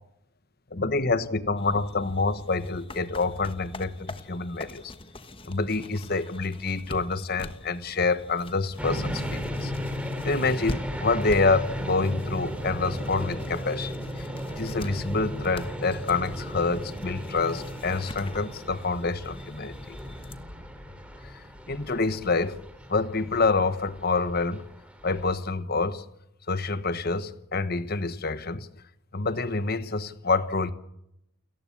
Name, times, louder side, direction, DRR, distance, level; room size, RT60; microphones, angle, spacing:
voice 1, 0.7-4.9 5.5-9.7 10.2-14.3 14.6-20.0 21.2-22.6 22.9-24.6 25.0-26.0 26.5-28.7 29.1-30.7, left 3 dB, 45° left, 1.2 m, -27 dB
sound 1, 1.6-20.3, left 1 dB, 25° left, 1.3 m, -44 dB
sound 2, 8.8-25.3, equal, 5° right, 2.9 m, -35 dB
29.5 x 14.5 x 8.7 m
head